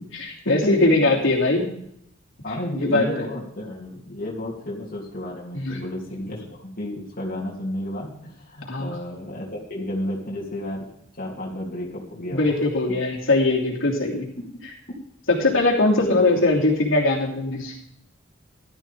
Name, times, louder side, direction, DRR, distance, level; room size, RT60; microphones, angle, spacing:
voice 1, 0.1-1.6 2.8-3.2 5.5-5.8 8.7-9.0 12.3-14.3 15.3-17.8, left 2 dB, 90° left, -3 dB, 3.0 m, -21 dB
voice 2, 2.4-10.8 11.2-12.4 16.0-16.4, left 1 dB, 45° left, -4 dB, 3.2 m, -32 dB
14.0 x 12.5 x 3.7 m, 0.74 s
head